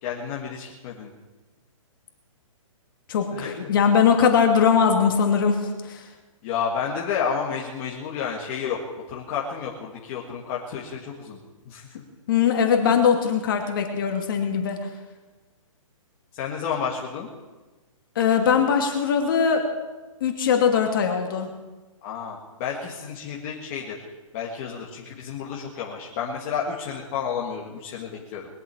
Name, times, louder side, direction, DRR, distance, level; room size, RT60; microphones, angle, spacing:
voice 1, 0.0-1.1 3.3-3.5 6.4-8.8 9.1-11.4 11.7-12.0 16.3-17.3 22.0-24.1 24.3-28.5, left 7 dB, 25° left, -3 dB, 1.7 m, -31 dB
voice 2, 3.1-6.0 12.3-14.8 18.2-19.6 20.2-21.5, left 7 dB, 40° left, 3 dB, 2.5 m, -21 dB
21.5 x 8.0 x 8.3 m, 1.2 s
hypercardioid pair, 170°, 18 cm